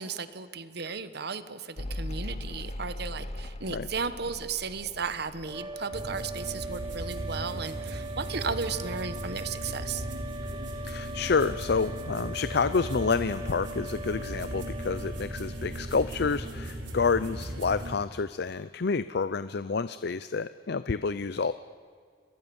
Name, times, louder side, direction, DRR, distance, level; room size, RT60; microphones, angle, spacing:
voice 1, 0.0-10.1, right 5 dB, 65° right, 12 dB, 1.2 m, -35 dB
Mechanical fan, 1.8-8.6 8.9-9.7, left 1 dB, 40° left, 1.1 m, -40 dB
sound 1, 5.4-16.1, right 2 dB, 25° right, 0.9 m, -41 dB
sound 2, 5.9-17.9, right 1 dB, 85° right, 4.7 m, -37 dB
voice 2, 10.8-21.5, left 4 dB, 60° left, 14 dB, 0.6 m, -29 dB
30.0 x 22.5 x 7.1 m, 2.1 s
head